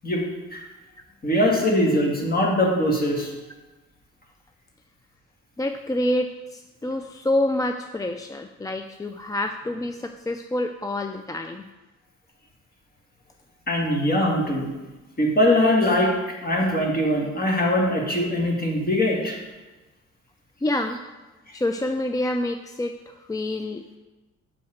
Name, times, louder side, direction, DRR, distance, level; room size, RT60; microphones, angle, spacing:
voice 1, 1.2-3.3 13.7-14.7 15.2-16.1 16.4-19.4, left 1 dB, 30° left, -1 dB, 2.1 m, -21 dB
voice 2, 5.6-11.7 20.6-21.1 21.5-23.9, left 1 dB, 10° left, 5 dB, 0.3 m, -27 dB
5.5 x 5.4 x 6.5 m, 1.1 s
cardioid pair, 90°, 30 cm